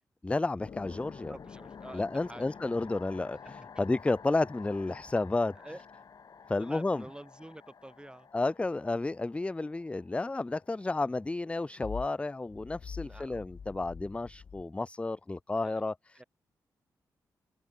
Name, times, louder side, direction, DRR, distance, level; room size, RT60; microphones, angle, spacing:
voice 1, 0.2-1.3 1.9-3.4 3.8-5.6 6.5-7.0 8.3-15.9, left 2 dB, 15° left, 0.3 m, -31 dB
sound 1, 0.6-14.6, left 6 dB, 55° left, 1.5 m, -48 dB
voice 2, 1.3-2.7 5.5-5.8 6.6-8.3 13.0-13.4 15.6-15.8 16.1-16.2, right 1 dB, 10° right, 7.7 m, -48 dB
open air
cardioid pair, 55°, 7 cm